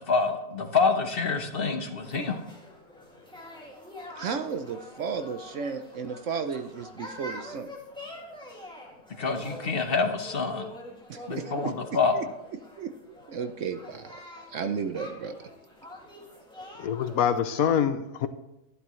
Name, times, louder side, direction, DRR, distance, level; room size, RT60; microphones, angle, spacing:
voice 1, 0.0-2.4 9.2-10.7 11.3-12.2, left 4 dB, 40° left, 5 dB, 1.1 m, -26 dB
sound 1, 2.0-17.4, left 1 dB, 5° left, 2.2 m, -45 dB
voice 2, 4.1-7.7 11.1-12.2 12.8-14.2 14.5-15.3, right 6 dB, 60° right, 8 dB, 0.9 m, -34 dB
voice 3, 16.8-18.3, left 8 dB, 70° left, 11 dB, 1.1 m, -25 dB
12.0 x 11.5 x 3.1 m, 0.93 s
omnidirectional pair, 1.6 m